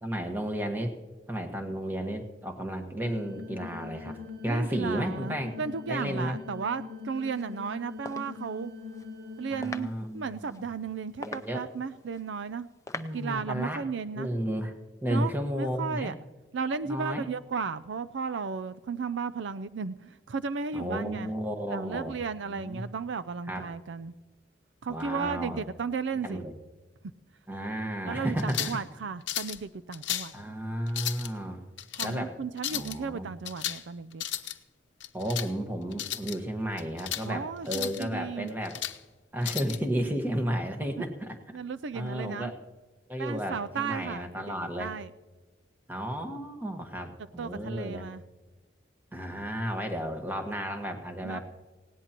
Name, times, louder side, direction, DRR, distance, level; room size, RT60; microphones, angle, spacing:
voice 1, 0.0-0.9 1.3-5.5 5.9-6.4 9.5-10.6 11.2-11.6 12.9-13.8 14.1-14.7 15.0-16.1 16.9-17.2 20.7-22.1 22.5-22.8 23.5-23.7 24.9-25.6 26.2-26.5 27.5-28.6 30.3-31.6 32.0-32.3 32.7-33.3 35.1-38.8 39.3-41.4 41.9-42.6 43.1-44.9 45.9-48.1 49.1-51.4, equal, 10° right, 4 dB, 1.4 m, -33 dB
sound 1, 3.0-9.5, left 4 dB, 50° right, 0.9 m, -42 dB
voice 2, 4.5-8.7 9.4-12.7 13.1-14.3 15.1-15.3 15.6-16.1 16.5-21.3 21.7-24.1 24.8-26.4 28.1-30.3 32.0-34.2 37.2-38.5 41.0-41.1 41.5-42.5 43.2-45.1 47.4-48.2 51.2-51.4, right 5 dB, 75° right, 13 dB, 0.4 m, -34 dB
sound 2, 7.2-13.4, left 3 dB, 15° left, 0.5 m, -45 dB
sound 3, 28.4-28.8 29.3-29.6 29.9-30.3 30.9-31.3 31.8-32.1 32.6-33.0 33.5-33.8 34.1-34.6 35.0-35.5 35.9-36.4 36.8-37.3 37.7-38.0 38.5-39.0 39.4-39.8, left 12 dB, 70° left, 0.8 m, -34 dB
19.0 x 17.5 x 3.0 m, 1.2 s
head